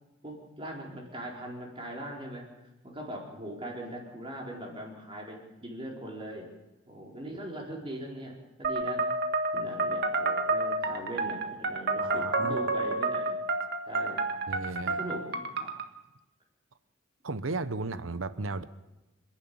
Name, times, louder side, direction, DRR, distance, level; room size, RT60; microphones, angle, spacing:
voice 1, 0.2-2.4 2.8-6.5 6.9-9.0 9.5-13.4 13.9-14.3 14.8-15.7, right 1 dB, 25° right, -1 dB, 4.5 m, -40 dB
sound 1, 8.6-15.9, right 2 dB, 55° right, 1.6 m, -30 dB
voice 2, 12.0-12.7 14.5-15.0 17.2-18.6, right 3 dB, 85° right, 14 dB, 1.0 m, -35 dB
27.5 x 11.0 x 8.8 m, 1.0 s
head